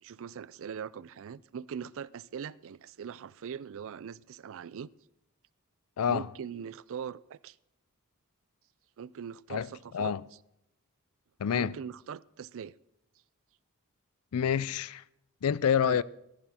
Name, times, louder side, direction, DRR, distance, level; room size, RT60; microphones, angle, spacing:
voice 1, 0.0-4.9 6.0-7.6 9.0-10.2 11.5-12.8 15.8-16.0, right 7 dB, 65° right, 0.4 m, -41 dB
voice 2, 11.4-11.8 14.3-15.0 15.4-16.0, left 8 dB, 75° left, 0.4 m, -27 dB
14.5 x 13.5 x 4.3 m
head